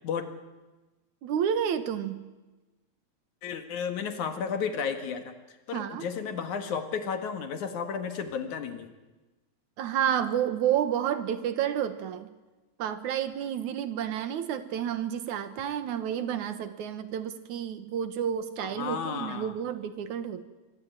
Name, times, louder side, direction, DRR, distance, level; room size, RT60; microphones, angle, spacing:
voice 1, 1.2-2.2 5.7-6.1 9.8-12.3 12.8-20.4, right 9 dB, 85° right, 11 dB, 2.9 m, -30 dB
voice 2, 3.4-5.3 5.7-8.9 18.6-19.5, left 6 dB, 80° left, 7 dB, 3.3 m, -33 dB
26.5 x 22.5 x 9.1 m, 1.2 s
omnidirectional pair, 3.3 m